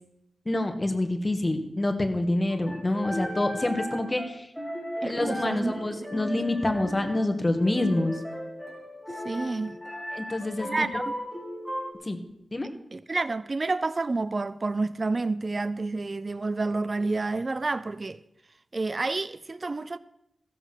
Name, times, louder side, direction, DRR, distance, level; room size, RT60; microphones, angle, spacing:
voice 1, 0.4-4.5 5.0-8.1 10.1-10.9 12.0-12.2 12.5-12.7, left 1 dB, 30° left, 1.7 m, -27 dB
sound 1, 2.5-11.9, equal, 5° left, 2.7 m, -36 dB
voice 2, 5.0-6.1 9.2-9.8 10.6-11.1 12.9-18.2 18.7-20.0, right 3 dB, 50° right, 0.4 m, -29 dB
14.5 x 7.8 x 6.2 m
cardioid pair, 55°, 0 cm